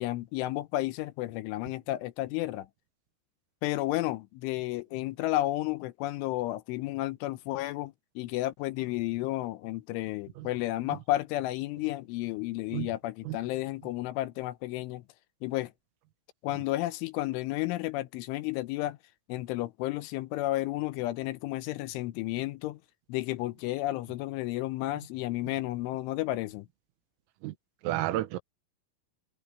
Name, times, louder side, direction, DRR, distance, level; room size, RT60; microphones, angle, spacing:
voice 1, 0.0-2.7 3.6-15.0 15.4-15.7 16.4-19.0 19.3-22.8 23.1-26.7, left 16 dB, 80° left, 3.1 m, -32 dB
voice 2, 27.8-28.4, right 15 dB, 90° right, 3.8 m, -31 dB
omnidirectional pair, 5.8 m